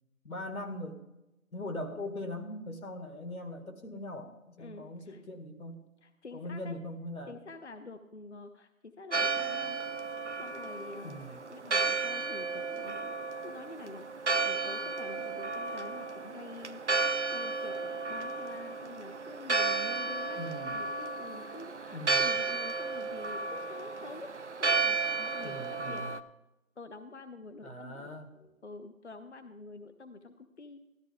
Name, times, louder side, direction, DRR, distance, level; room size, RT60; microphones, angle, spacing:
voice 1, 0.2-1.0 1.5-5.8 6.3-7.3 11.0-11.4 20.4-20.8 21.9-22.3 25.4-26.1 27.6-28.5, left 1 dB, 90° left, 5 dB, 2.1 m, -41 dB
voice 2, 4.6-5.2 6.0-6.8 7.3-9.8 10.4-13.1 13.4-24.3 24.6-26.0 26.8-28.1 28.6-30.9, left 3 dB, 55° left, 9 dB, 0.6 m, -47 dB
Church bell, 9.1-26.2, right 4 dB, 55° right, 0.6 m, -33 dB
13.0 x 11.5 x 3.5 m, 0.95 s
figure-of-eight pair, 175°, 42 cm